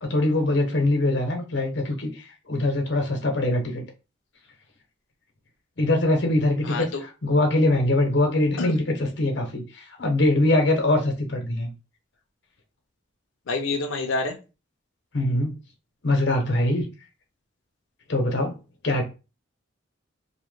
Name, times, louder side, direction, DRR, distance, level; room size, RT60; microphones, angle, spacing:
voice 1, 0.0-3.8 5.8-11.7 15.1-15.5 16.0-16.9 18.1-18.6 18.8-19.0, left 1 dB, 60° left, 0.9 m, -23 dB
voice 2, 6.6-7.0 8.6-8.8 13.5-14.4, left 3 dB, 80° left, 0.5 m, -27 dB
2.8 x 2.2 x 3.1 m
head